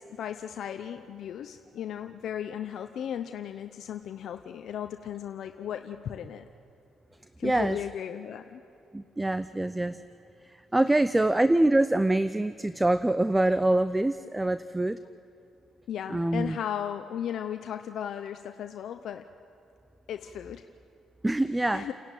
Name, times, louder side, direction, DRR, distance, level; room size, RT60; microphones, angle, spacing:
voice 1, 0.0-6.5 7.4-8.6 10.8-11.2 15.9-19.3 20.1-20.7 21.5-21.9, left 9 dB, 70° left, 7 dB, 0.7 m, -36 dB
voice 2, 7.4-7.8 8.9-10.0 10.4-15.0 16.1-16.6 21.2-21.9, right 1 dB, 10° right, 13 dB, 0.5 m, -25 dB
30.0 x 11.0 x 9.2 m, 2.7 s
cardioid pair, 90°, 0 cm